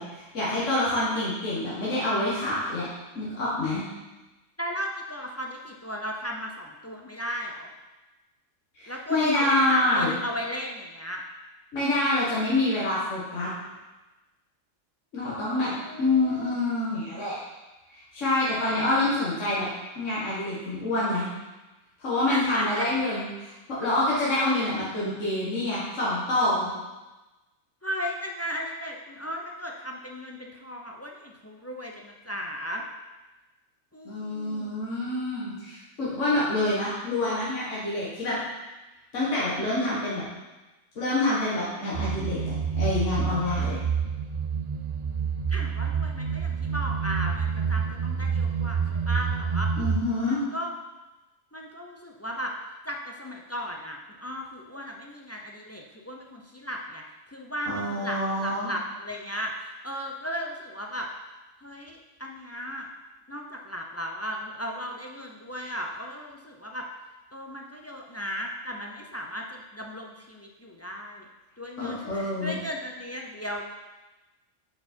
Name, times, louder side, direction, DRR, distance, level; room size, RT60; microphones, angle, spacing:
voice 1, 0.0-2.9 3.2-3.8 8.8-10.1 11.7-13.5 15.1-15.7 16.0-17.4 17.9-19.7 20.0-21.3 22.0-23.5 23.8-26.7 34.1-38.4 39.1-40.2 41.0-43.8 49.8-50.4 57.7-58.7 71.8-72.6, left 2 dB, 75° left, -8 dB, 1.9 m, -27 dB
voice 2, 4.6-7.7 8.9-11.2 15.2-16.5 22.3-22.9 27.8-32.8 33.9-34.7 45.5-49.7 50.2-50.7 51.5-52.5 52.8-57.0 57.3-61.1 61.6-62.9 63.3-66.9 67.3-71.3 71.6-73.6, equal, 20° left, 1 dB, 0.4 m, -36 dB
sound 1, 41.9-50.0, right 6 dB, 60° right, 0.4 m, -28 dB
8.6 x 4.7 x 4.4 m, 1.1 s
omnidirectional pair, 1.3 m